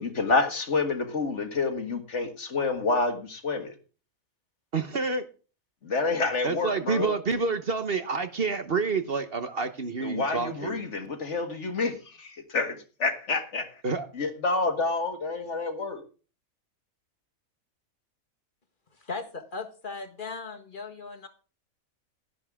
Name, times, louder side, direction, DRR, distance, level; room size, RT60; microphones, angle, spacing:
voice 1, 0.0-3.7 5.8-7.1 10.0-13.7 14.1-16.0, left 3 dB, 55° left, 7 dB, 1.9 m, -28 dB
voice 2, 4.7-5.3 6.4-10.8 13.8-14.1, right 4 dB, 45° right, 9 dB, 1.1 m, -28 dB
voice 3, 19.0-21.3, left 4 dB, 35° left, 7 dB, 1.7 m, -38 dB
12.0 x 11.0 x 3.6 m, 0.35 s
omnidirectional pair, 1.5 m